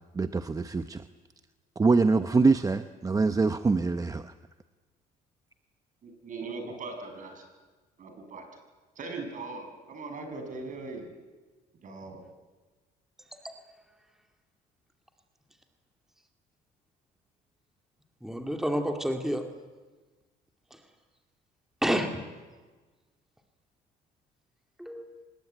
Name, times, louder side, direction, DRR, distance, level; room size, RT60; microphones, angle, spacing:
voice 1, 0.1-1.0 1.8-4.3, right 4 dB, 20° right, 10 dB, 0.9 m, -24 dB
voice 2, 6.0-7.5 8.0-8.5 9.0-11.1 11.8-12.2, right 3 dB, 50° right, 5 dB, 6.8 m, -39 dB
voice 3, 18.2-19.4 20.7-20.8 21.8-22.2 24.8-25.2, equal, ahead, 4 dB, 2.2 m, -29 dB
25.0 x 21.0 x 9.2 m, 1.3 s
cardioid pair, 110°, 17 cm